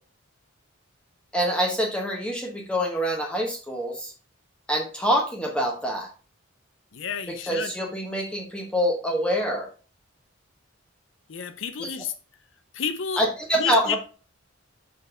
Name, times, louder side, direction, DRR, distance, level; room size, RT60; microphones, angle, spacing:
voice 1, 1.3-4.1 4.7-6.1 7.5-9.7 13.2-14.0, equal, 5° left, 1.1 m, -25 dB
voice 2, 6.9-7.7 11.3-12.1 12.7-13.2 13.5-14.0, left 6 dB, 60° left, 0.6 m, -30 dB
6.3 x 4.6 x 4.9 m
head